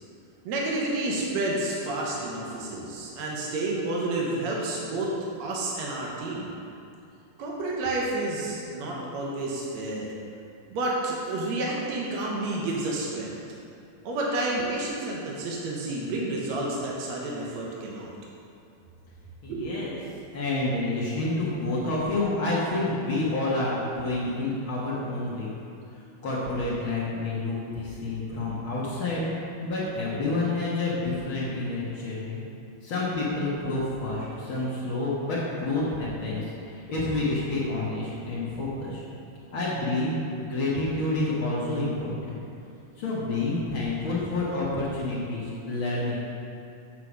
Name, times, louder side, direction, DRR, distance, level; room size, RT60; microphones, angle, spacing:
voice 1, 0.5-6.5 7.4-10.1 10.7-13.4 14.0-18.1 19.5-19.8, right 2 dB, 70° right, -3 dB, 1.8 m, -30 dB
voice 2, 19.4-20.0 20.3-25.5 26.2-32.4 32.8-39.0 39.5-40.1 40.4-42.4 43.0-46.2, left 2 dB, 65° left, -7 dB, 1.2 m, -29 dB
8.2 x 4.8 x 6.2 m, 2.6 s
omnidirectional pair, 4.0 m